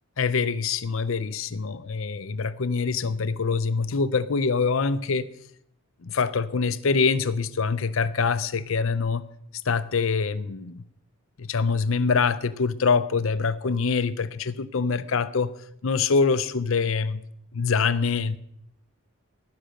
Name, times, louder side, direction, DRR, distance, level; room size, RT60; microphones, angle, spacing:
voice 1, 0.2-5.3 6.0-9.2 9.7-10.8 11.4-15.5 15.8-17.2 17.5-18.4, left 5 dB, 70° left, 0.6 m, -24 dB
15.5 x 11.5 x 6.4 m
head